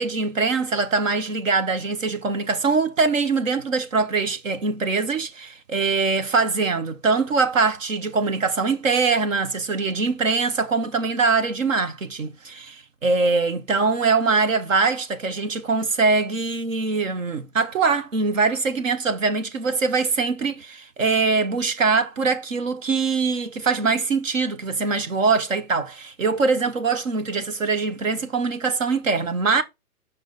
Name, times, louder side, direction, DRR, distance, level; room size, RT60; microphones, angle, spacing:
voice 1, 0.0-29.6, right 4 dB, 60° right, 1.0 m, -23 dB
7.1 x 5.4 x 3.9 m
hypercardioid pair, 165°, 45 cm